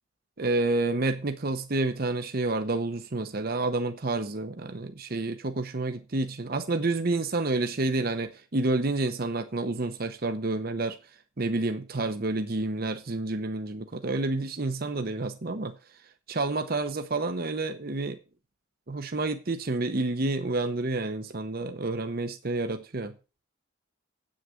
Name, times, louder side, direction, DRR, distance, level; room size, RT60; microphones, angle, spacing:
voice 1, 0.4-11.0 11.4-15.7 16.3-18.2 18.9-23.1, right 2 dB, 45° right, 0.8 m, -29 dB
8.6 x 6.5 x 7.0 m
head